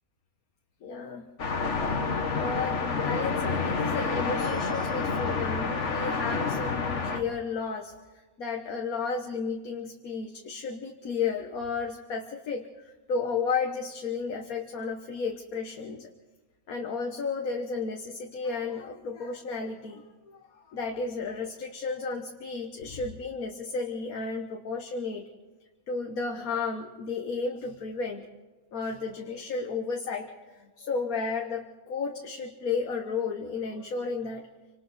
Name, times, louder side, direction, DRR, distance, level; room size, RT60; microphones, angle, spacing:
voice 1, 0.8-1.3 2.4-7.9 8.4-16.1 16.7-25.3 25.9-28.3 28.7-34.5, left 4 dB, 80° left, 2 dB, 1.7 m, -33 dB
sound 1, 1.4-7.2, left 4 dB, 55° left, 1.8 m, -29 dB
27.0 x 25.5 x 4.2 m, 1.2 s
omnidirectional pair, 1.5 m